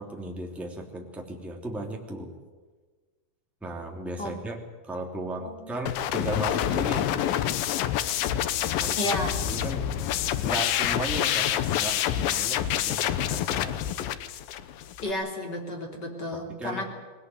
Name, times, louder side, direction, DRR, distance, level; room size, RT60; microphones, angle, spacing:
voice 1, 0.0-2.3 3.6-7.1 8.4-9.9 10.4-13.8 16.3-16.8, right 1 dB, ahead, 1 dB, 1.9 m, -36 dB
voice 2, 5.4-5.7 9.0-9.4 15.0-16.8, left 1 dB, 25° left, 2 dB, 3.3 m, -32 dB
sound 1, 5.9-15.1, left 11 dB, 75° left, 2.2 m, -27 dB
20.5 x 20.0 x 9.8 m, 1.4 s
omnidirectional pair, 5.1 m